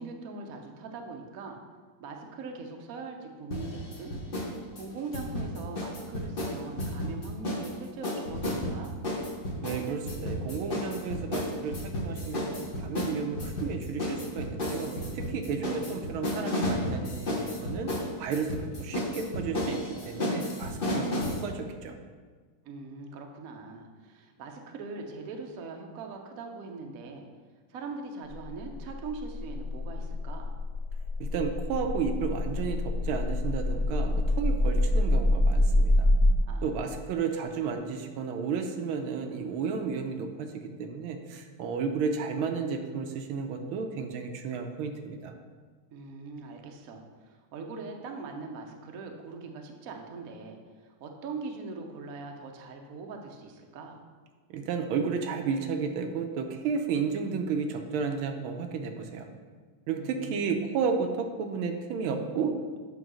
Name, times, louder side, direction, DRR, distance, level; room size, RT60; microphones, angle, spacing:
voice 1, 0.0-1.6 2.0-4.1 4.7-8.9 15.5-16.2 22.6-27.3 27.7-30.5 36.5-37.7 45.9-54.0 59.9-60.5, right 4 dB, 60° right, 3 dB, 0.9 m, -41 dB
sound 1, 3.5-4.5 4.8-7.7 8.0-21.4, left 1 dB, 35° left, 0.9 m, -32 dB
voice 2, 9.6-17.9 18.2-19.8 20.1-22.0 31.2-36.1 36.6-45.3 54.5-59.3 59.9-62.8, right 5 dB, 80° right, 5 dB, 1.5 m, -32 dB
sound 2, 28.3-36.3, left 1 dB, 20° left, 1.4 m, -26 dB
9.0 x 3.1 x 6.1 m, 1.5 s
omnidirectional pair, 2.4 m